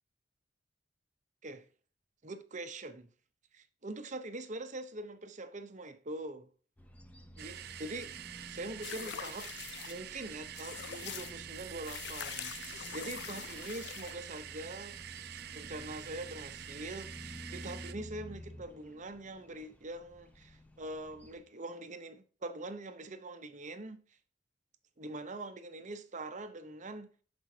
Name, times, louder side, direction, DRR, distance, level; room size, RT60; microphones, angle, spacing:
voice 1, 2.2-3.1 3.5-6.5 7.4-8.1 8.5-9.5 9.9-12.5 12.9-15.0 15.6-24.0 25.0-27.1, right 2 dB, 40° right, 0.9 m, -43 dB
sound 1, 6.8-21.4, equal, 10° left, 0.7 m, -52 dB
sound 2, 7.4-17.9, right 11 dB, 55° right, 0.5 m, -47 dB
sound 3, 8.8-10.0 10.6-11.3 11.8-14.2, left 11 dB, 60° left, 0.4 m, -44 dB
12.5 x 5.3 x 2.8 m
head